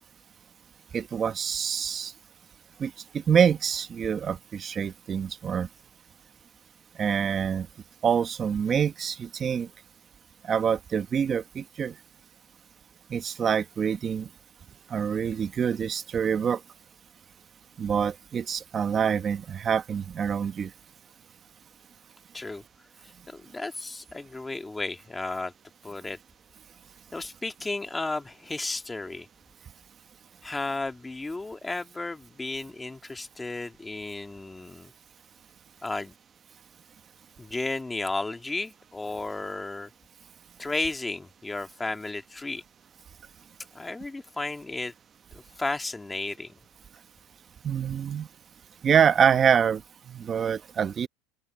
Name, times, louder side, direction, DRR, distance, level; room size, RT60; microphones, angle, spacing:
voice 1, 0.9-2.1 2.8-5.7 7.0-7.7 8.0-9.7 10.4-11.9 13.1-14.3 14.9-16.6 17.8-20.7 47.6-48.3 48.8-49.8 50.1-51.1, right 7 dB, 25° right, 0.9 m, -26 dB
voice 2, 23.0-25.5 25.8-26.2 27.1-29.3 30.4-34.9 35.8-36.2 37.4-39.9 40.6-42.6 43.7-44.9 45.3-46.5, left 2 dB, 10° left, 1.9 m, -33 dB
open air
cardioid pair, 155°, 0 cm